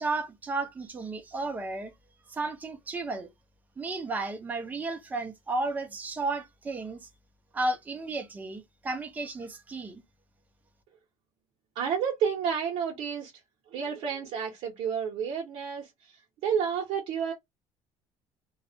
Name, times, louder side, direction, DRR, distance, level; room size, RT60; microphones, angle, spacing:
voice 1, 0.0-1.9 2.3-3.3 3.8-7.1 7.5-10.0, right 2 dB, 15° right, 0.5 m, -33 dB
voice 2, 11.7-13.3 13.7-17.3, right 7 dB, 65° right, 0.7 m, -30 dB
2.3 x 2.1 x 2.7 m
cardioid pair, 170°, 11 cm